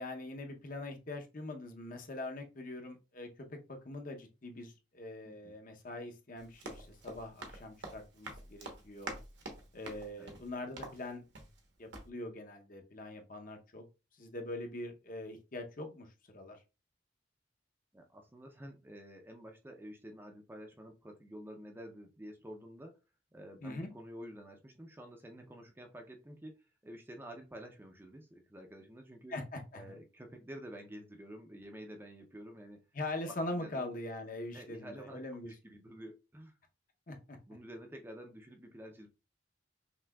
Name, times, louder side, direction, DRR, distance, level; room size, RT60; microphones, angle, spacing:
voice 1, 0.0-9.2 9.7-11.2 11.8-13.8 14.2-16.6 23.6-23.9 29.3-29.9 32.9-35.5 37.1-37.4, left 2 dB, 45° left, 5 dB, 0.7 m, -43 dB
voice 2, 5.2-5.6 10.2-10.3 17.9-23.0 23.3-29.3 29.7-32.8 33.3-33.9 34.5-36.5 37.5-39.1, equal, 10° right, 3 dB, 0.5 m, -50 dB
Run, 6.4-11.7 11.9-12.1, right 2 dB, 65° right, 1.0 m, -47 dB
5.8 x 2.7 x 2.3 m, 0.29 s
head